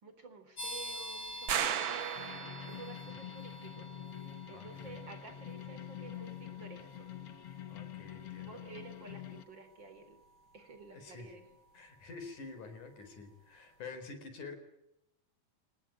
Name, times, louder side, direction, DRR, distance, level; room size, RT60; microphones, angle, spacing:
voice 1, 0.0-2.3 2.7-3.9 4.5-7.1 8.4-10.2 10.5-11.5, right 4 dB, 35° right, 9 dB, 4.6 m, -51 dB
sound 1, 0.6-13.1, equal, 40° left, 7.3 m, -49 dB
sound 2, 1.5-3.0, right 9 dB, 60° right, 1.4 m, -34 dB
sound 3, 2.2-9.4, left 12 dB, 60° left, 1.9 m, -46 dB
voice 2, 4.5-5.0 7.7-8.7 10.9-11.3 11.7-14.6, left 4 dB, 85° left, 8 dB, 5.8 m, -48 dB
27.0 x 19.0 x 9.0 m, 0.85 s
omnidirectional pair, 3.4 m